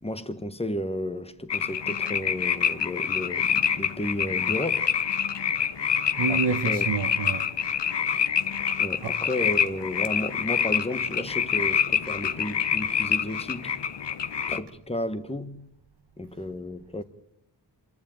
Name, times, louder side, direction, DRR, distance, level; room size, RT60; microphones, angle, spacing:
voice 1, 0.0-4.9 6.3-6.4 6.6-6.9 8.8-13.7 14.5-15.7 16.2-17.0, left 1 dB, 15° left, 1.2 m, -33 dB
sound 1, 1.5-14.6, left 7 dB, 70° left, 1.0 m, -26 dB
voice 2, 6.2-7.5 9.0-9.1, right 5 dB, 60° right, 1.1 m, -28 dB
26.5 x 12.0 x 8.9 m
wide cardioid pair, 90°, 44 cm